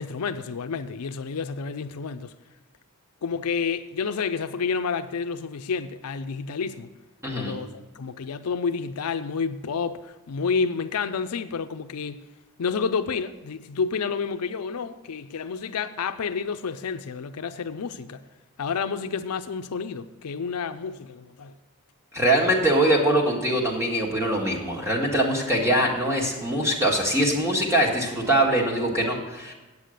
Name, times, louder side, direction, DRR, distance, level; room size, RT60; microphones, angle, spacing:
voice 1, 0.0-2.3 3.2-6.9 7.3-12.2 12.6-18.2 18.6-21.5, left 5 dB, 75° left, 0.5 m, -30 dB
voice 2, 7.2-7.5 22.1-29.5, right 1 dB, 15° right, 1.7 m, -23 dB
8.4 x 8.3 x 6.4 m
head